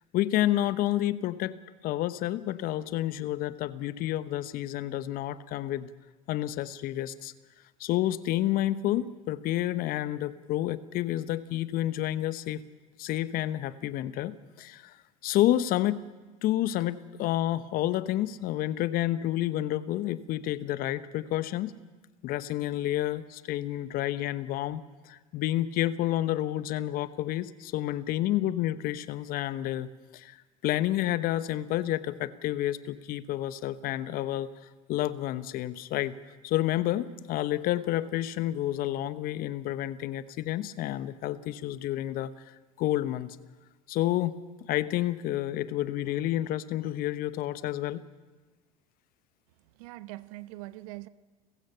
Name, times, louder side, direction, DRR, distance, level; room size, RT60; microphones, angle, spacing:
voice 1, 0.1-1.6 1.8-5.9 6.3-7.3 7.8-12.6 13.0-15.0 15.2-16.0 16.4-21.7 22.2-30.4 30.6-34.5 34.9-36.1 36.4-42.3 42.8-43.4 43.9-44.4 44.7-48.0, left 14 dB, 50° left, 1.0 m, -29 dB
voice 2, 49.7-51.1, right 19 dB, 70° right, 0.8 m, -42 dB
30.0 x 15.5 x 5.7 m
hypercardioid pair, 75°, 19 cm